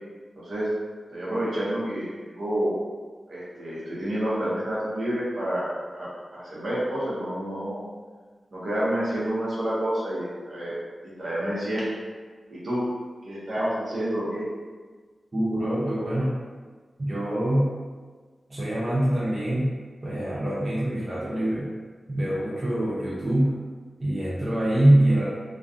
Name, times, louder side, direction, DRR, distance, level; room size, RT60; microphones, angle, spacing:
voice 1, 0.4-0.7 1.1-2.7 3.3-7.8 8.5-10.8 11.0-11.9 12.5-12.8 13.2-14.4, right 1 dB, 65° right, -8 dB, 0.8 m, -29 dB
voice 2, 15.3-16.4 17.0-17.7 18.5-19.7 20.0-21.7 22.1-23.6 24.0-25.3, right 1 dB, 35° right, -9 dB, 0.5 m, -24 dB
2.5 x 2.3 x 2.4 m, 1.4 s
wide cardioid pair, 120°, 0 cm